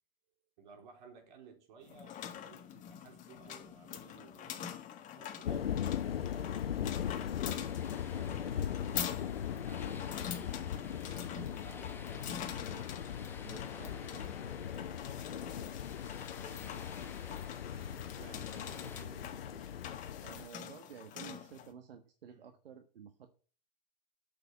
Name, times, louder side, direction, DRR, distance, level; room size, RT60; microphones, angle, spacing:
voice 1, 0.6-4.8 5.1-7.0 7.4-13.0 14.0-17.6 18.1-20.0 22.3-22.5, right 5 dB, 55° right, 3.9 m, -58 dB
sound 1, 1.8-21.7, left 9 dB, 25° left, 1.7 m, -45 dB
sound 2, 5.4-20.5, left 9 dB, 85° left, 0.9 m, -39 dB
sound 3, 7.4-19.0, left 4 dB, 5° left, 1.2 m, -54 dB
voice 2, 13.4-14.6 18.1-18.5 20.2-23.3, right 7 dB, 80° right, 1.4 m, -52 dB
8.7 x 6.7 x 8.4 m
hypercardioid pair, 135°, 29 cm